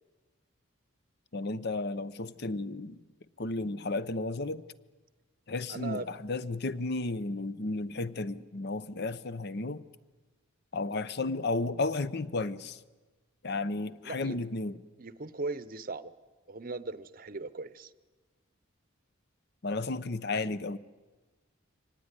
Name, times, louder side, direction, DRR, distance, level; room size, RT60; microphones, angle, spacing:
voice 1, 1.3-3.0 3.4-4.6 5.5-9.8 10.7-12.8 13.4-14.8 19.6-20.8, left 3 dB, 50° left, 0.7 m, -33 dB
voice 2, 5.7-6.1 14.0-14.4 15.0-16.1 16.5-17.9, right 3 dB, 45° right, 0.8 m, -38 dB
25.0 x 18.5 x 9.7 m
head